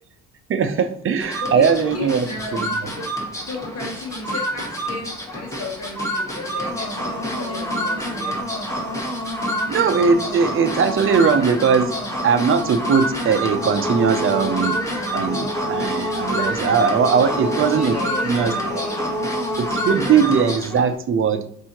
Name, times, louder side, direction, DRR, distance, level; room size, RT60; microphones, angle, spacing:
voice 1, 0.5-2.3 2.6-2.9 9.7-11.9 12.2-14.8 15.1-17.9 18.2-18.8 19.7-21.4, right 6 dB, 45° right, 9 dB, 0.6 m, -19 dB
sound 1, 1.2-20.9, equal, 10° left, 1.3 m, -27 dB
voice 2, 1.3-2.6 2.9-3.1 3.5-8.4 17.1-19.2, left 3 dB, 55° left, -2 dB, 1.1 m, -34 dB
5.5 x 2.7 x 2.9 m, 0.68 s
cardioid pair, 90°, 30 cm